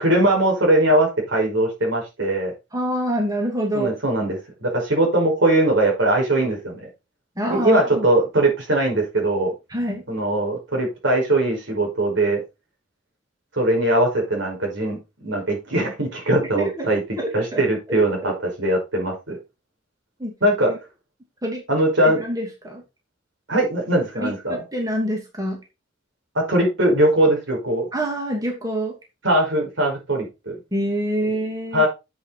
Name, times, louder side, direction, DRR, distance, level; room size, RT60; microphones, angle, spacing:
voice 1, 0.0-2.5 3.7-6.9 7.5-9.5 10.1-12.4 13.5-15.0 15.2-17.0 17.3-19.4 20.4-20.7 21.7-22.2 23.5-24.6 26.4-27.9 29.2-30.6 31.7-31.9, right 1 dB, 75° right, 1 dB, 5.2 m, -20 dB
voice 2, 2.7-3.9 7.4-8.1 9.7-10.0 16.5-17.6 17.9-18.3 20.2-20.3 20.7-20.8 21.4-21.6 22.0-22.8 24.1-25.6 27.9-29.0 30.7-31.8, equal, 20° right, 0 dB, 2.8 m, -26 dB
8.2 x 8.0 x 4.1 m, 0.26 s
head